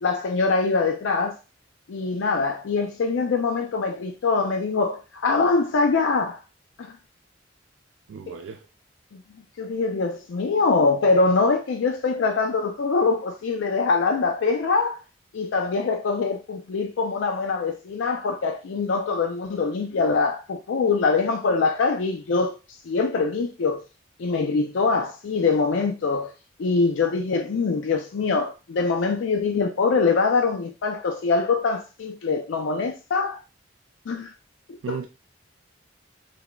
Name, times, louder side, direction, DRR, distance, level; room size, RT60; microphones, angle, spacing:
voice 1, 0.0-1.4 1.9-6.4 6.8-6.9 8.3-8.4 9.1-9.2 9.6-15.0 15.3-22.5 22.8-23.8 24.2-26.3 26.6-33.4 34.1-34.3 34.7-35.0, left 4 dB, 75° left, 0.4 m, -23 dB
voice 2, 8.1-8.7 34.8-35.1, right 6 dB, 80° right, 0.3 m, -34 dB
3.8 x 3.5 x 2.2 m
head